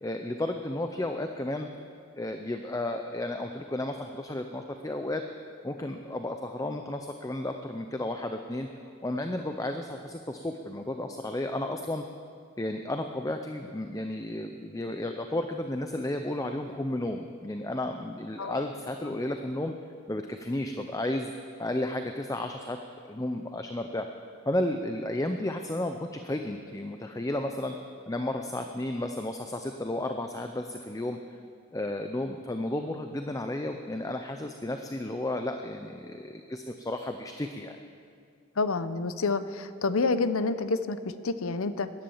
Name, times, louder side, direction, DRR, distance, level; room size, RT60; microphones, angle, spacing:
voice 1, 0.0-1.7 2.2-5.2 5.6-8.7 9.0-12.0 12.6-19.7 20.1-21.3 21.6-22.8 23.0-24.1 24.5-27.7 28.1-31.2 31.7-37.8, left 1 dB, 15° left, 6 dB, 0.5 m, -33 dB
voice 2, 38.6-41.9, left 3 dB, 80° left, 12 dB, 0.7 m, -28 dB
17.0 x 11.0 x 7.2 m, 2.3 s
head